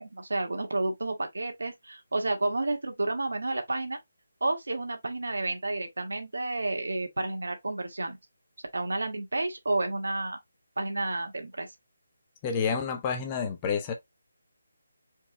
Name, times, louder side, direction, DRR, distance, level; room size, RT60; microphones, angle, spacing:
voice 1, 0.0-4.0 4.4-8.2 8.7-10.4 10.8-11.7, right 2 dB, 90° right, 1.6 m, -31 dB
voice 2, 12.4-13.9, left 6 dB, 15° left, 0.8 m, -29 dB
4.6 x 2.8 x 3.7 m
hypercardioid pair, 170°, 0 cm